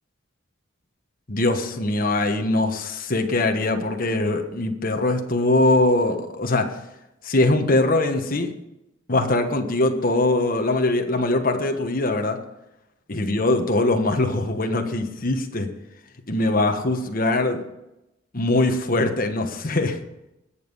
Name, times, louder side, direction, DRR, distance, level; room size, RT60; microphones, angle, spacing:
voice 1, 1.3-6.7 7.2-8.5 9.1-12.4 13.1-15.7 16.3-17.6 18.3-20.0, left 2 dB, 45° left, 5 dB, 1.3 m, -22 dB
19.5 x 7.2 x 5.6 m, 0.91 s
head